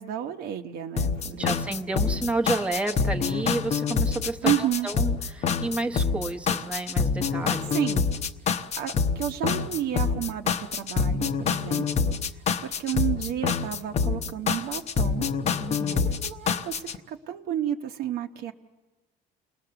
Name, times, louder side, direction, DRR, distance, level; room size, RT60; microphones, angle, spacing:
voice 1, 0.0-1.5 4.4-4.9 7.7-8.0 8.5-15.3 15.9-18.5, right 11 dB, 60° right, 4 dB, 1.0 m, -31 dB
sound 1, 1.0-17.0, left 5 dB, 35° left, 0.9 m, -26 dB
voice 2, 1.3-7.8 15.6-16.1, right 2 dB, 5° right, 3 dB, 1.1 m, -31 dB
29.0 x 20.0 x 6.9 m, 1.2 s
cardioid pair, 150°, 18 cm